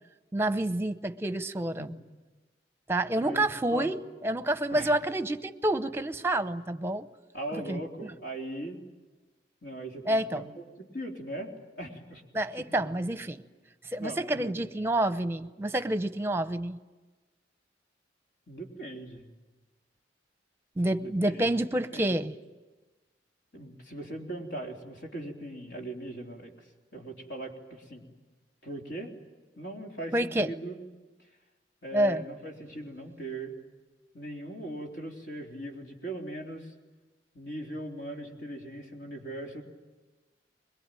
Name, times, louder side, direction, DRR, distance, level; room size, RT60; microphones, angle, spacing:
voice 1, 0.3-1.9 2.9-7.1 7.7-8.1 10.1-10.4 12.3-13.4 13.8-16.8 20.8-22.3 30.1-30.5 31.9-32.2, right 1 dB, 15° right, 11 dB, 0.8 m, -28 dB
voice 2, 3.2-3.9 4.7-4.9 7.3-8.8 9.6-12.2 12.5-12.9 14.0-14.5 18.5-19.2 21.0-21.5 21.9-22.1 23.5-26.7 26.9-28.1 28.6-29.2 29.6-30.8 31.8-33.6 34.1-36.7 37.3-39.6, right 1 dB, 70° left, 1 dB, 3.6 m, -39 dB
23.0 x 22.0 x 9.1 m, 1.2 s
head